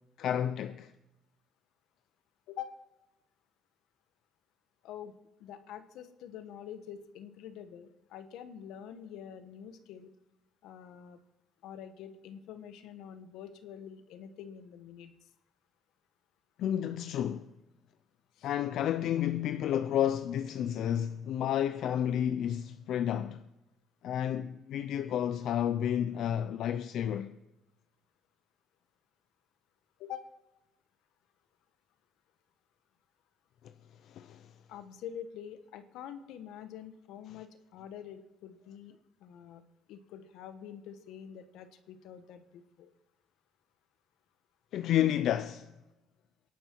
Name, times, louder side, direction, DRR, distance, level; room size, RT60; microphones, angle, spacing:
voice 1, 0.2-0.9 16.6-17.5 18.4-23.4 24.0-27.3 34.0-34.5 44.7-45.7, left 10 dB, 65° left, 0.5 m, -31 dB
voice 2, 2.5-2.8 4.8-5.1 5.4-10.1 10.6-11.2 11.6-15.1 18.4-18.5 30.0-30.3 34.7-39.6 39.9-42.9, left 9 dB, 85° left, 1.2 m, -46 dB
23.5 x 11.0 x 4.6 m
cardioid pair, 140°, 0 cm